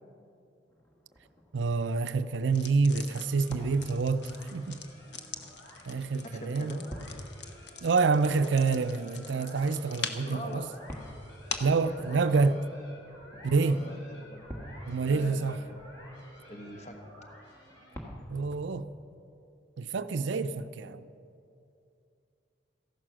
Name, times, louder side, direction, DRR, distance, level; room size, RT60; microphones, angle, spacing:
sound 1, 0.7-18.7, equal, 15° left, 1.6 m, -50 dB
voice 1, 1.5-4.8 5.9-6.8 7.8-10.6 11.6-12.6 13.4-13.8 14.9-15.6 18.3-18.9 19.8-21.0, right 4 dB, 85° right, 0.5 m, -27 dB
sound 2, 2.5-11.8, left 5 dB, 70° left, 1.0 m, -44 dB
sound 3, 3.1-18.2, equal, 85° left, 4.2 m, -53 dB
voice 2, 6.2-7.0 10.3-10.7 11.7-12.6 13.6-14.4 15.0-15.6 16.5-17.0, left 1 dB, 40° left, 1.1 m, -43 dB
14.5 x 11.0 x 6.2 m
head